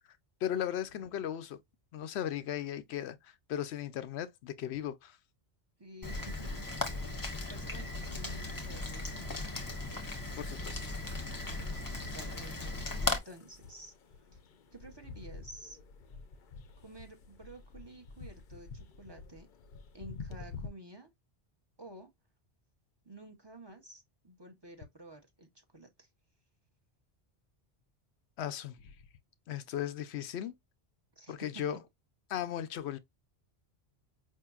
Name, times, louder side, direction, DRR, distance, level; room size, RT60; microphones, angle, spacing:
voice 1, 0.4-1.6 1.9-5.2 10.4-10.9 28.4-28.9 29.5-30.5 31.3-31.8 32.3-33.0, left 10 dB, 90° left, 0.9 m, -37 dB
voice 2, 5.8-7.0 7.5-9.5 11.9-13.9 14.3-14.4 14.7-15.8 16.8-19.5 19.9-21.1 21.8-22.1 23.0-26.1 31.2-31.8, right 1 dB, 30° right, 0.7 m, -51 dB
Rain, 6.0-13.2, left 2 dB, 20° left, 0.7 m, -37 dB
sound 1, 8.3-20.7, left 4 dB, 55° left, 0.7 m, -50 dB
5.0 x 2.7 x 2.3 m
omnidirectional pair, 1.1 m